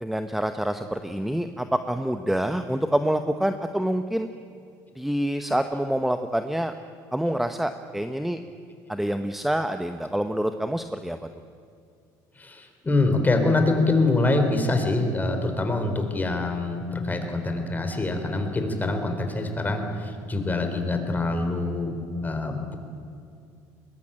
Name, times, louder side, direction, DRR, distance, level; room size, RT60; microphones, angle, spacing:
voice 1, 0.0-4.3 5.0-6.7 7.1-8.4 8.9-11.2, right 1 dB, ahead, 8 dB, 1.0 m, -26 dB
voice 2, 12.4-21.9 22.2-22.8, left 2 dB, 20° left, 5 dB, 4.2 m, -25 dB
21.5 x 21.0 x 9.0 m, 2.4 s
supercardioid pair, 95°, 9 cm